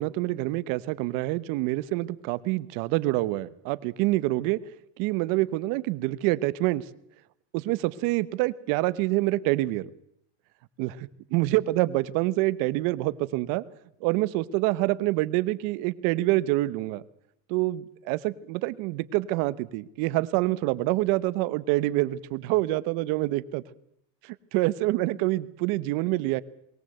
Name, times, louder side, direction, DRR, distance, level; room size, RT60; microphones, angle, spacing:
voice 1, 0.0-4.6 5.0-6.8 7.5-9.9 10.8-10.9 11.3-13.6 14.0-17.0 17.5-23.6 24.2-26.4, right 18 dB, 70° right, 17 dB, 1.2 m, -26 dB
22.0 x 18.0 x 7.9 m, 0.73 s
supercardioid pair, 115°, 34 cm